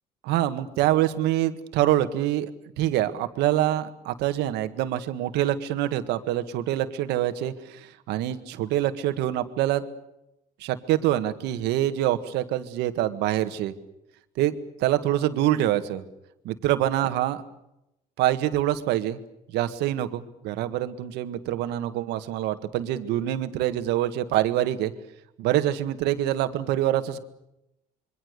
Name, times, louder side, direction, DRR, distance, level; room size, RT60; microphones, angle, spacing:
voice 1, 0.2-2.5 2.8-9.8 10.6-13.7 14.4-14.5 14.8-16.0 16.4-17.4 18.2-19.2 19.5-24.9 25.4-27.2, right 13 dB, 90° right, 10 dB, 1.7 m, -25 dB
27.0 x 23.0 x 6.7 m, 0.85 s
cardioid pair, 110°, 17 cm